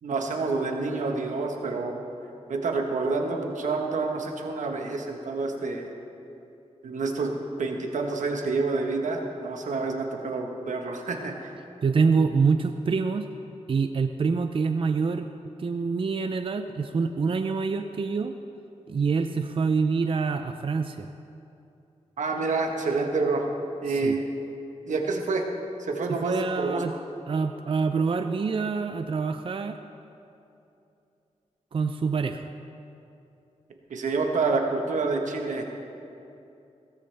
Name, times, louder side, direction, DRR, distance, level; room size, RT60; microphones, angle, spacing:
voice 1, 0.0-1.9 2.5-5.8 6.8-7.3 7.6-11.5 22.2-23.5 23.8-24.2 24.9-25.5 25.8-26.8 33.9-35.6, right 3 dB, 85° right, 3 dB, 1.3 m, -28 dB
voice 2, 11.8-13.3 13.7-15.3 15.6-18.3 18.9-21.1 23.9-24.2 26.1-26.9 27.3-29.8 31.7-32.5, right 5 dB, 45° right, 8 dB, 0.5 m, -26 dB
17.0 x 13.0 x 3.4 m, 2.7 s
wide cardioid pair, 80°, 12 cm